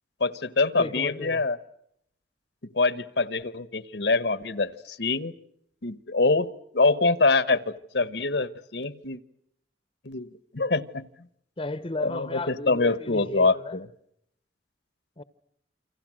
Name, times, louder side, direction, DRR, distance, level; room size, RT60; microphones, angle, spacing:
voice 1, 0.2-1.6 2.7-5.3 5.8-6.5 6.7-9.2 10.0-11.1 12.0-13.8, left 3 dB, 70° left, 1.2 m, -25 dB
voice 2, 0.8-1.4 11.6-13.8 15.2-15.3, left 2 dB, 30° left, 0.9 m, -34 dB
28.5 x 25.5 x 6.3 m
head